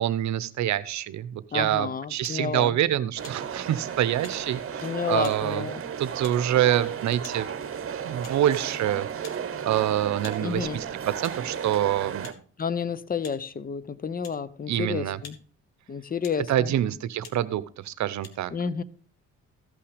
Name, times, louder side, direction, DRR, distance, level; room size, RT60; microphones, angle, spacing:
voice 1, 0.0-5.7 6.0-7.5 8.0-9.1 9.6-12.3 14.7-15.2 16.5-18.5, right 12 dB, 70° right, 16 dB, 0.8 m, -26 dB
voice 2, 1.5-2.7 4.8-5.8 10.4-10.8 12.6-15.4 15.9-16.7 18.5-18.8, left 6 dB, 30° left, 18 dB, 0.7 m, -30 dB
sound 1, 2.2-2.4 3.2-3.4 4.2-4.4 5.2-5.4 6.2-6.4 7.2-7.4 8.2-8.4 9.2-9.4 10.2-10.4 11.2-11.4 12.2-12.4 13.2-13.4 14.2-14.4 15.2-15.4 16.2-16.4 17.2-17.4 18.2-18.3, left 6 dB, 60° left, 1.8 m, -45 dB
sound 2, 3.2-12.3, right 8 dB, 45° right, 1.2 m, -34 dB
15.0 x 5.7 x 5.0 m, 0.42 s
cardioid pair, 90°, 30 cm